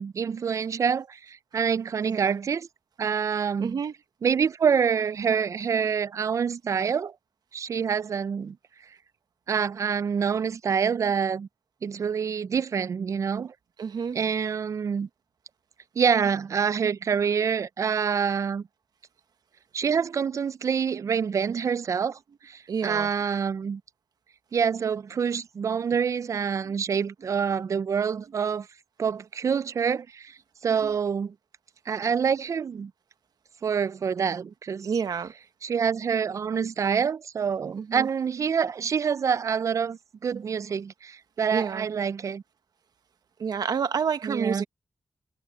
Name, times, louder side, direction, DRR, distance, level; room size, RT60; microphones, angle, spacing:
voice 1, 0.0-2.7 3.0-3.8 4.2-7.1 7.5-8.6 9.5-11.5 11.8-13.5 14.1-15.1 16.0-18.6 19.7-22.2 22.4-23.8 24.5-28.7 29.0-30.4 30.6-31.3 31.9-32.9 33.6-34.9 35.6-42.4 44.2-44.6, right 6 dB, 50° right, 0.3 m, -26 dB
voice 2, 2.0-2.3 3.6-3.9 13.8-14.2 22.7-23.1 30.8-30.9 34.8-35.3 37.8-38.1 41.5-41.9 43.4-44.7, right 6 dB, 75° right, 1.2 m, -29 dB
wide cardioid pair, 150°, 7 cm